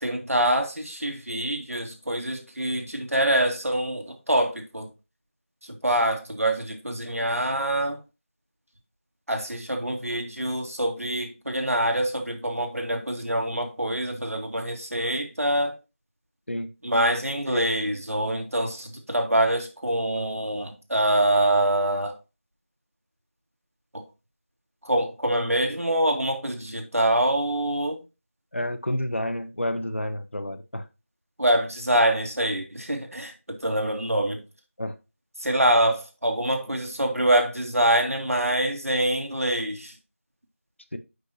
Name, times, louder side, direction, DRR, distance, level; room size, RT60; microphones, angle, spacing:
voice 1, 0.0-4.9 5.6-8.0 9.3-15.8 16.8-22.2 23.9-24.0 24.8-28.0 31.4-34.4 35.4-40.0, right 1 dB, 80° right, 2.2 m, -25 dB
voice 2, 28.5-30.8 34.8-34.9 40.9-41.0, left 1 dB, 60° left, 0.9 m, -29 dB
9.5 x 5.5 x 2.7 m
figure-of-eight pair, 180°, 8 cm